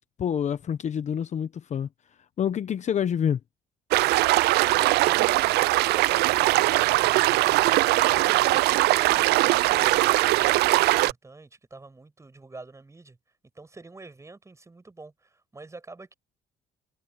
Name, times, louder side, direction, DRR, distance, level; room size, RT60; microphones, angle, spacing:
voice 1, 0.2-1.9 2.4-3.4, left 8 dB, 45° left, 0.9 m, -27 dB
sound 1, 3.9-11.1, right 19 dB, 75° right, 0.4 m, -21 dB
voice 2, 4.6-7.9 8.1-13.2 13.5-16.1, right 3 dB, 15° right, 7.4 m, -46 dB
cardioid pair, 110°, 17 cm